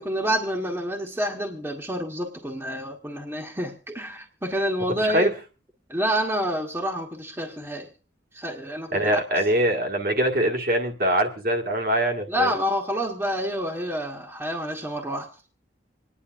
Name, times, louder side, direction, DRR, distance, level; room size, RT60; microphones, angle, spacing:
voice 1, 0.0-5.3 5.9-7.9 8.3-9.1 12.3-15.3, equal, 10° right, 0 dB, 1.3 m, -28 dB
voice 2, 5.0-5.3 8.9-12.5, right 1 dB, 50° right, 2 dB, 1.7 m, -23 dB
26.0 x 10.0 x 2.5 m, 0.33 s
head